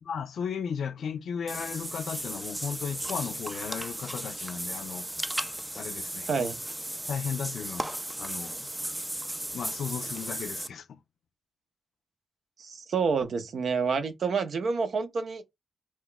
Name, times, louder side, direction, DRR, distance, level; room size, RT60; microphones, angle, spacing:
voice 1, 0.0-5.1 5.8-6.5 7.1-7.9 8.2-8.9 9.5-11.0, left 7 dB, 75° left, 0.4 m, -35 dB
Water / Bathtub (filling or washing), 1.5-10.7, right 1 dB, 15° right, 0.3 m, -36 dB
voice 2, 12.6-15.4, right 5 dB, 65° right, 0.5 m, -28 dB
2.3 x 2.2 x 3.7 m
supercardioid pair, 50°, 0 cm